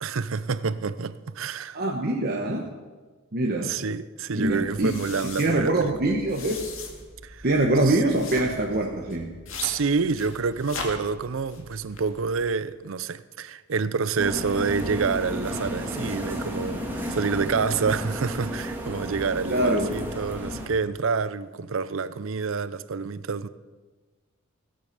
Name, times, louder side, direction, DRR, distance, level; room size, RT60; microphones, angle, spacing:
voice 1, 0.0-1.8 3.6-5.9 7.2-7.4 7.9-8.0 9.6-23.5, right 5 dB, 65° right, 0.5 m, -28 dB
voice 2, 1.7-2.7 3.3-3.7 4.3-4.9 5.4-6.7 7.4-9.3 19.5-19.9, right 1 dB, 45° right, 1.1 m, -24 dB
sound 1, 4.4-12.5, left 3 dB, 65° left, 2.2 m, -41 dB
sound 2, 14.2-20.7, equal, 10° right, 1.9 m, -32 dB
16.5 x 8.5 x 6.6 m
head